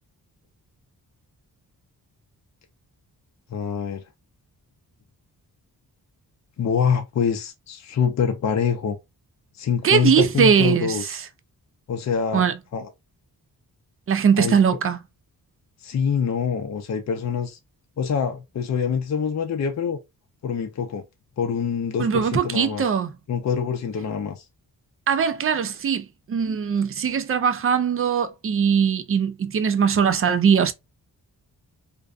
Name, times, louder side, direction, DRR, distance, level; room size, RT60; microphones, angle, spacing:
voice 1, 3.5-4.0 6.6-9.0 9.6-11.0 11.9-12.9 14.4-14.6 15.8-17.6 18.0-20.0 20.4-21.0 21.4-22.8 23.3-24.4, left 6 dB, 45° left, 0.5 m, -25 dB
voice 2, 9.8-11.3 12.3-12.6 14.1-15.0 22.0-23.1 25.1-30.7, right 7 dB, 35° right, 0.4 m, -21 dB
2.6 x 2.2 x 2.3 m
cardioid pair, 75°, 38 cm